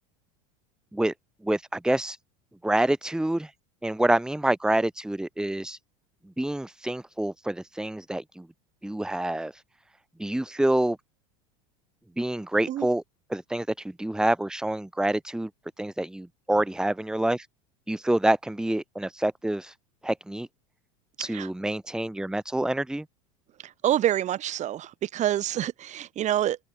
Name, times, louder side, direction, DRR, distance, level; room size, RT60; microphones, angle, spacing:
voice 1, 1.4-2.2 2.6-3.5 3.8-5.8 6.4-8.5 8.8-9.6 10.2-11.0 12.2-13.0 13.3-15.5 15.8-17.5 17.9-19.7 20.0-20.5 21.2-23.0, right 1 dB, 5° right, 2.2 m, -27 dB
voice 2, 23.8-26.6, right 12 dB, 40° right, 3.2 m, -26 dB
open air
supercardioid pair, 110°, 18 cm